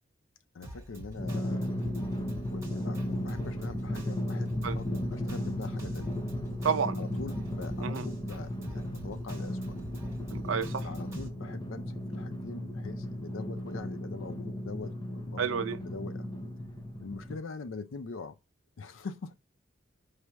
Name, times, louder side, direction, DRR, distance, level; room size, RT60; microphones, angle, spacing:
voice 1, 0.5-1.7 2.5-6.1 7.0-9.7 10.8-16.3 17.0-18.4 18.8-19.3, left 4 dB, 85° left, 0.5 m, -43 dB
Drum kit, 0.6-11.3, right 1 dB, 15° right, 1.1 m, -46 dB
Drum, 1.2-17.4, left 1 dB, 20° left, 0.5 m, -35 dB
voice 2, 6.6-7.0 7.8-8.1 10.3-10.9 15.4-15.8, right 6 dB, 85° right, 0.5 m, -30 dB
4.8 x 2.0 x 4.3 m
head